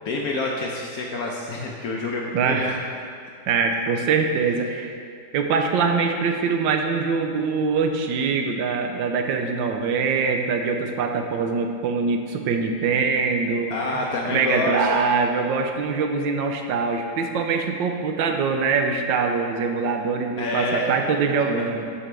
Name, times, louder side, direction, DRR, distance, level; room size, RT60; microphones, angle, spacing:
voice 1, 0.0-2.8 13.7-15.1 19.8-20.0 20.4-21.0 21.2-21.7, left 2 dB, 70° left, -1 dB, 0.9 m, -28 dB
voice 2, 2.3-2.8 3.5-4.9 5.3-21.8, right 5 dB, 80° right, 4 dB, 1.3 m, -23 dB
11.0 x 4.9 x 3.3 m, 2.2 s
omnidirectional pair, 2.1 m